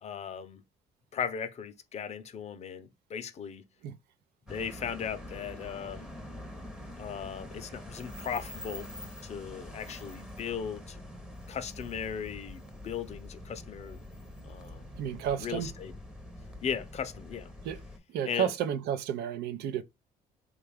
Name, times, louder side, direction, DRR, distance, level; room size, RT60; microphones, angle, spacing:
voice 1, 0.0-0.6 1.1-3.6 4.5-6.1 7.0-8.9 9.2-11.0 11.5-14.0 14.5-14.9 15.4-15.9 16.6-17.5 18.2-18.5, left 7 dB, 40° left, 0.6 m, -37 dB
sound 1, 4.5-18.0, left 1 dB, 5° right, 0.7 m, -45 dB
voice 2, 15.0-15.7 17.6-17.8 18.1-19.8, right 9 dB, 75° right, 0.5 m, -31 dB
3.3 x 2.4 x 3.4 m
cardioid pair, 110°, 17 cm